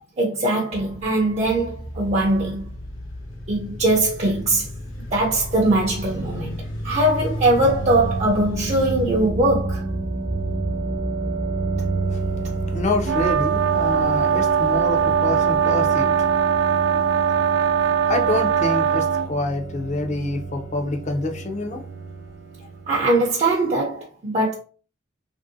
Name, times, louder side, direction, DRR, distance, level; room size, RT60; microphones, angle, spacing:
voice 1, 0.2-2.7 3.5-4.7 5.1-9.9 22.9-24.5, right 2 dB, 35° right, 0.5 m, -21 dB
sound 1, 0.7-9.3, equal, 90° left, 0.9 m, -34 dB
sound 2, 6.5-23.2, right 3 dB, 65° right, 0.8 m, -30 dB
voice 2, 12.7-16.6 16.9-17.3 18.1-21.8, left 2 dB, 40° left, 0.5 m, -27 dB
sound 3, 13.0-19.3, right 8 dB, 85° right, 0.3 m, -20 dB
3.0 x 2.6 x 2.6 m
head